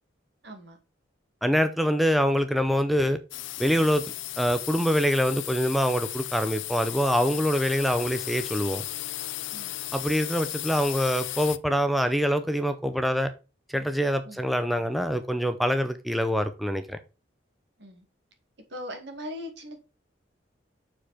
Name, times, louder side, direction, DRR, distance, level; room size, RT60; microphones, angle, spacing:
voice 1, 0.4-0.8 9.5-9.8 14.3-14.4 17.8-18.0 18.7-19.8, left 1 dB, 65° right, 2.2 m, -39 dB
voice 2, 1.4-3.2 3.6-8.8 9.9-13.3 13.7-17.0, equal, ahead, 0.5 m, -25 dB
sound 1, 3.3-11.6, left 15 dB, 80° left, 0.5 m, -35 dB
7.0 x 4.7 x 4.3 m
head